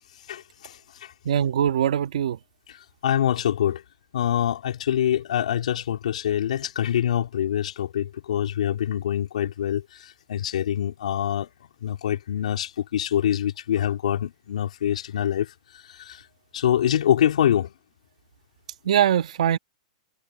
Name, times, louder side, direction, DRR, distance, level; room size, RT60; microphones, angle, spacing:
voice 1, 0.3-0.7 3.0-3.8 4.1-9.8 10.3-11.5 11.8-15.5 16.0-16.2 16.5-17.7, left 10 dB, 75° left, 4.1 m, -25 dB
voice 2, 1.2-2.4 18.8-19.6, right 10 dB, 65° right, 1.6 m, -22 dB
supercardioid pair, 175°, 4 cm